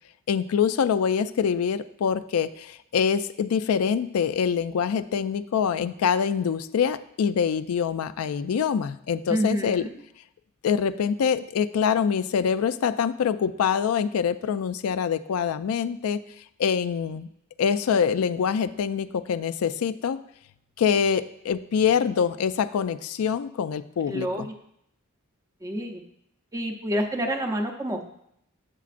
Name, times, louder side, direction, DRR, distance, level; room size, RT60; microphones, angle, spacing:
voice 1, 0.3-9.9 10.6-16.2 16.6-17.3 17.6-20.2 20.8-24.5, left 7 dB, 80° left, 12 dB, 0.3 m, -25 dB
voice 2, 9.3-9.9 24.1-24.5 25.6-26.0 26.5-28.1, equal, 15° right, 3 dB, 0.6 m, -28 dB
8.2 x 7.0 x 2.5 m, 0.74 s
head